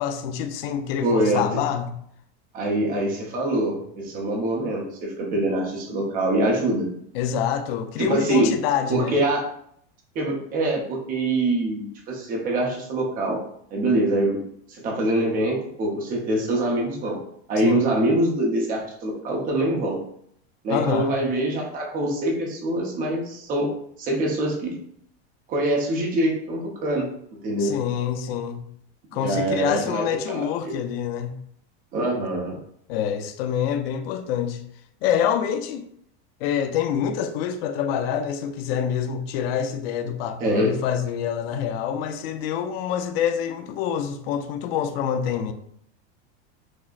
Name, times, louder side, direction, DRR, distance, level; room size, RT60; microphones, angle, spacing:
voice 1, 0.0-1.9 7.1-9.2 17.6-17.9 20.7-21.2 27.6-28.6 29.1-31.4 32.9-34.6 35.0-35.8 36.4-45.5, left 8 dB, 60° left, 0.5 m, -26 dB
voice 2, 1.0-1.4 2.5-6.9 8.0-8.5 8.9-9.4 10.1-13.4 13.7-14.4 14.7-17.2 17.5-20.0 20.6-23.7 24.0-24.7 25.5-27.1 27.4-27.7 29.1-30.7 31.9-32.6 40.4-40.7, right 1 dB, 25° right, 0.7 m, -24 dB
6.1 x 2.0 x 2.4 m
supercardioid pair, 165°, 34 cm